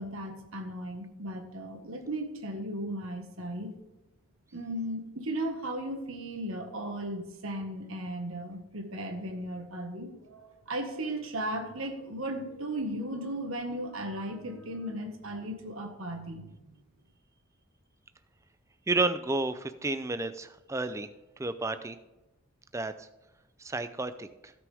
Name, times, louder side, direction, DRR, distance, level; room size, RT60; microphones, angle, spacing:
voice 1, 0.0-3.8 4.5-16.5, right 1 dB, 70° right, 3 dB, 1.6 m, -36 dB
voice 2, 18.9-21.1 21.4-22.0 22.7-23.1 23.6-24.5, right 2 dB, 15° right, 11 dB, 0.4 m, -31 dB
16.5 x 6.1 x 3.5 m, 1.0 s
head